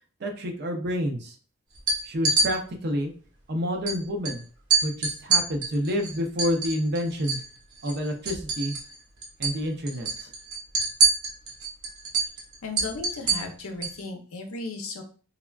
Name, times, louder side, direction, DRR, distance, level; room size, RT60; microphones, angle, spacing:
voice 1, 0.2-1.3 2.0-3.1 3.5-4.4 4.8-7.4 7.8-8.8 9.4-10.3, equal, 50° right, 4 dB, 0.5 m, -28 dB
sound 1, 1.7-2.5 3.9-4.0 4.2-4.4 4.7-7.5 7.8-9.0 9.2-9.6 9.9-14.0, right 4 dB, 80° right, 0.9 m, -25 dB
voice 2, 12.6-15.0, left 3 dB, 75° left, 3 dB, 0.6 m, -35 dB
3.4 x 2.2 x 2.3 m, 0.41 s
head